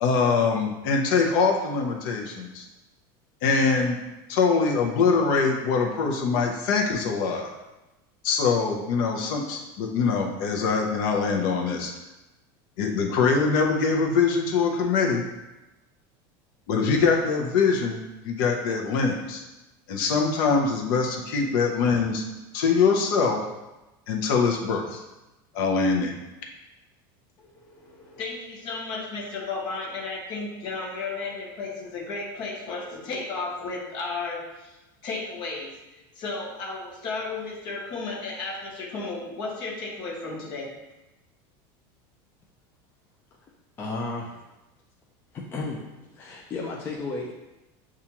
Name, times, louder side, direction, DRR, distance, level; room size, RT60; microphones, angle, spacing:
voice 1, 0.0-2.7 3.4-4.0 4.3-7.5 8.2-11.9 12.8-15.3 16.7-19.4 19.9-22.2 22.5-23.4 24.1-25.0 25.5-26.1, left 5 dB, 60° left, 1 dB, 0.6 m, -23 dB
voice 2, 27.5-34.8 35.0-40.7, left 3 dB, 40° left, -1 dB, 0.9 m, -34 dB
voice 3, 43.8-44.4 45.3-45.8 46.1-47.3, left 3 dB, 15° left, -2 dB, 0.3 m, -33 dB
6.9 x 2.4 x 2.9 m, 1.0 s
cardioid pair, 175°, 12 cm